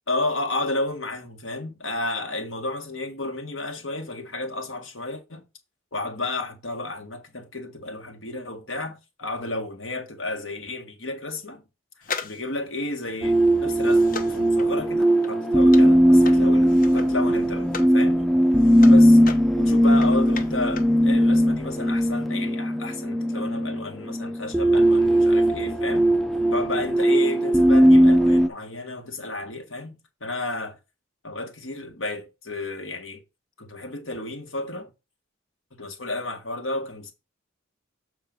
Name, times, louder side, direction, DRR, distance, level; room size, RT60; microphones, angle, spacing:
voice 1, 0.1-5.4 5.9-11.6 12.2-14.0 14.3-18.2 18.9-19.2 19.6-26.1 26.5-30.8 31.2-33.2 33.6-34.9 35.8-37.1, left 2 dB, 70° left, 1.9 m, -32 dB
sound 1, 12.0-18.0 18.3-21.0 21.3-21.4, left 5 dB, 45° left, 0.9 m, -38 dB
sound 2, 13.2-28.5, equal, ahead, 0.4 m, -18 dB
7.4 x 4.4 x 5.3 m
head